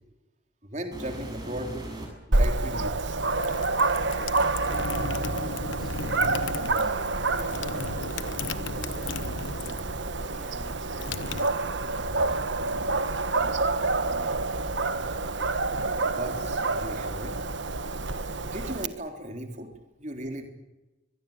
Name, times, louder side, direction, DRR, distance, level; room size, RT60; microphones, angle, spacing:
voice 1, 0.6-1.9 2.3-3.2 16.0-17.4 18.4-19.7 20.0-20.5, right 1 dB, 35° right, 4 dB, 3.8 m, -36 dB
sound 1, 0.9-2.3 3.2-3.3 5.9-8.0 9.2-12.9 13.2-14.2 15.0-15.1 15.7-15.8 16.5-17.6 17.9-18.4 19.7-19.8, right 1 dB, 20° right, 7.9 m, -44 dB
Dog, 2.3-18.9, right 3 dB, 75° right, 1.4 m, -28 dB
sound 2, 3.4-10.0 10.2-12.1, left 4 dB, 80° left, 1.1 m, -36 dB
voice 2, 5.6-6.3 6.6-7.6 8.0-12.4 13.3-13.6 14.0-14.4, equal, ahead, 1 dB, 3.9 m, -49 dB
24.0 x 20.5 x 8.9 m, 1.0 s
head